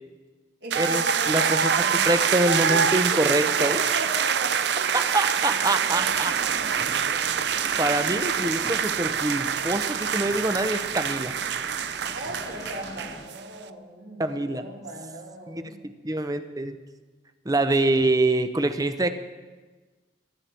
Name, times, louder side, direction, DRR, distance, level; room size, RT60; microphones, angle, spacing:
voice 1, 0.6-2.1 2.7-2.8 3.1-5.2 5.4-7.4 12.0-15.9, right 1 dB, 90° right, -3 dB, 4.4 m, -38 dB
sound 1, 0.7-13.4, right 7 dB, 65° right, 0.5 m, -25 dB
voice 2, 1.3-1.6 2.1-3.8 5.1-6.3 7.8-11.3 14.2-14.6 15.5-15.6 16.0-16.8 17.4-19.1, right 2 dB, 20° right, 9 dB, 0.7 m, -25 dB
sound 2, 5.9-13.3, left 1 dB, 20° left, 1.2 m, -44 dB
23.0 x 11.5 x 4.4 m, 1.3 s
head